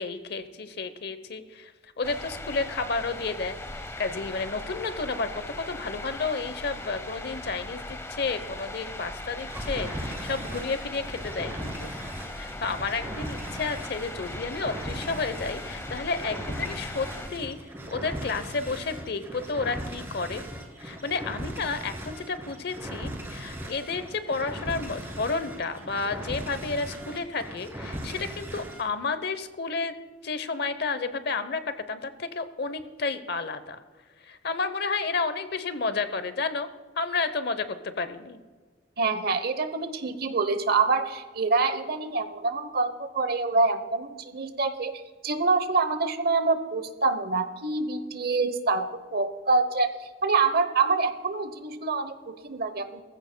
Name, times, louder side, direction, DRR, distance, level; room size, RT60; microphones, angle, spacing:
voice 1, 0.0-1.7 2.0-11.9 12.3-17.6 17.9-20.4 20.8-29.9 30.2-33.8 34.2-36.7 37.0-38.4, left 4 dB, 55° left, 12 dB, 0.8 m, -31 dB
sound 1, 2.0-17.3, left 2 dB, 15° left, 0.7 m, -39 dB
sound 2, 9.5-28.9, right 1 dB, 15° right, 1.9 m, -38 dB
voice 2, 39.0-44.9 45.2-48.9 49.1-52.1 52.4-53.0, right 4 dB, 55° right, 11 dB, 0.9 m, -26 dB
19.0 x 15.0 x 2.2 m, 1.4 s
head